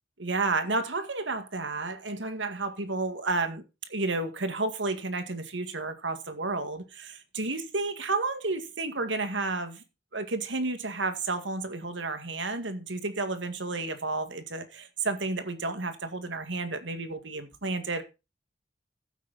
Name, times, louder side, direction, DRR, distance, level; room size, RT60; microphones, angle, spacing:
voice 1, 0.2-3.6 3.9-9.8 10.1-18.0, right 3 dB, 85° right, 2.0 m, -31 dB
15.0 x 8.4 x 4.2 m
head